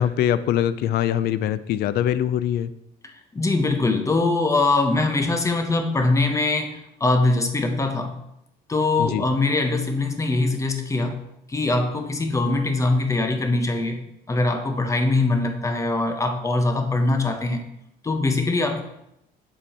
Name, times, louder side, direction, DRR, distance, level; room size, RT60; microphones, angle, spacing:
voice 1, 0.0-2.7 9.0-9.2, left 10 dB, 70° left, 15 dB, 0.4 m, -23 dB
voice 2, 3.0-8.2 8.7-11.2 11.5-14.0 14.3-17.7 18.0-18.9, left 2 dB, 20° left, 6 dB, 0.9 m, -22 dB
7.1 x 5.3 x 4.3 m, 0.81 s
cardioid pair, 110°, 17 cm